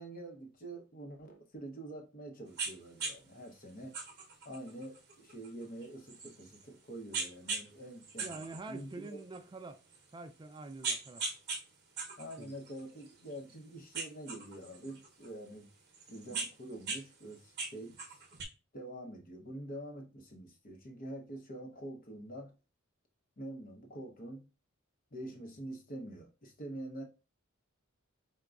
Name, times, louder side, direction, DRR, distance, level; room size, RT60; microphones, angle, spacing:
voice 1, 0.0-4.0 4.4-9.2 12.2-15.7 16.1-18.0 18.7-22.5 23.4-24.5 25.1-27.0, right 1 dB, 45° left, 0.8 m, -46 dB
sound 1, 2.6-2.7 3.0-3.2 3.9-6.6 7.1-7.7 8.0-9.4 9.9-10.0 10.6-11.6 12.0-13.5 13.9-15.3 15.9-17.0 17.3-18.4, right 4 dB, 50° right, 0.8 m, -39 dB
voice 2, 8.2-9.8 10.1-11.2 12.4-12.5, right 3 dB, 20° right, 0.3 m, -46 dB
4.9 x 2.2 x 2.3 m
head